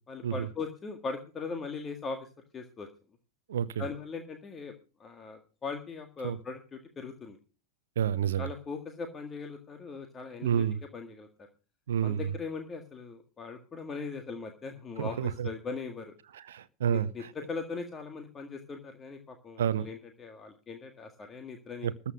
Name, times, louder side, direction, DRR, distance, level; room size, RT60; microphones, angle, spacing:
voice 1, 0.1-2.9 3.8-4.7 5.0-7.4 8.4-10.6 10.9-11.3 12.0-16.1 16.9-21.9, left 4 dB, 20° left, 1.9 m, -40 dB
voice 2, 3.5-3.8 6.2-6.4 8.0-8.5 10.4-10.8 11.9-12.2 15.0-15.5 16.3-17.3 19.6-19.9 21.8-22.1, right 8 dB, 60° right, 0.7 m, -29 dB
14.0 x 8.4 x 6.4 m
figure-of-eight pair, 90°, 0 cm